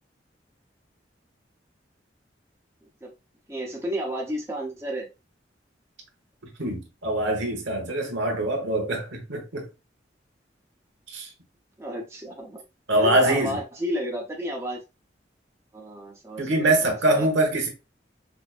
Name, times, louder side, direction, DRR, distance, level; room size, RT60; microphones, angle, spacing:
voice 1, 3.5-5.1 11.8-12.6 12.9-14.8 15.7-17.3, equal, 15° right, 0.8 m, -32 dB
voice 2, 6.6-9.7 11.1-11.3 12.9-13.6 16.4-17.7, right 1 dB, 90° right, 1.1 m, -24 dB
5.1 x 2.0 x 2.4 m
head